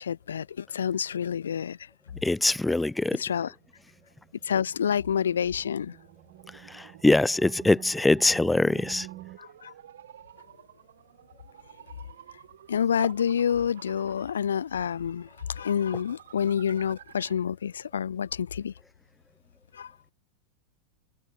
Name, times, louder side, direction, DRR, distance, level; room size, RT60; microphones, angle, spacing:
voice 1, 0.0-1.8 3.2-3.5 4.4-6.0 9.4-9.7 12.7-18.7 19.7-19.9, left 8 dB, 65° left, 0.5 m, -28 dB
voice 2, 2.2-3.2 6.5-9.1, left 2 dB, 5° left, 0.6 m, -23 dB
sound 1, 3.3-9.4, right 16 dB, 35° right, 2.5 m, -49 dB
sound 2, 4.8-17.5, right 11 dB, 60° right, 3.5 m, -52 dB
figure-of-eight pair, 90°, 0 cm